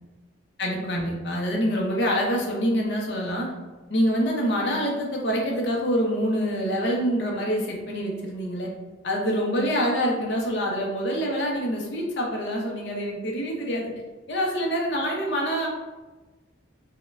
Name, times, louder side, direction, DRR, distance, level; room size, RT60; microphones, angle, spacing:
voice 1, 0.6-3.5 3.9-8.7 9.0-13.9 14.3-15.7, equal, 60° left, -1 dB, 0.6 m, -26 dB
4.1 x 2.1 x 2.4 m, 1.2 s
head